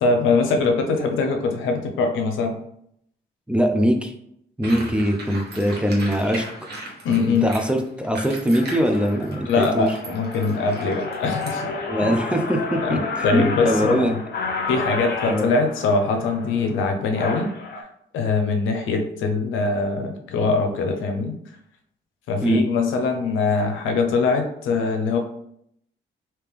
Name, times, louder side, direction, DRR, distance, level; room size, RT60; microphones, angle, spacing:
voice 1, 0.0-2.6 7.0-7.5 9.5-11.7 12.8-14.2 14.7-17.5 18.1-21.3 22.3-25.2, left 4 dB, 90° left, 5 dB, 0.6 m, -22 dB
voice 2, 3.5-4.1 4.6-6.4 7.3-9.9 11.9-14.1 15.3-15.5 22.4-22.6, equal, 5° right, 4 dB, 0.5 m, -22 dB
sound 1, 4.6-11.5, right 2 dB, 55° right, 1.1 m, -37 dB
sound 2, 5.6-5.8 6.4-6.7 7.2-7.6 8.0-8.1 8.4-17.8, left 3 dB, 55° left, 0.8 m, -31 dB
3.3 x 2.8 x 3.4 m, 0.72 s
cardioid pair, 90°, 20 cm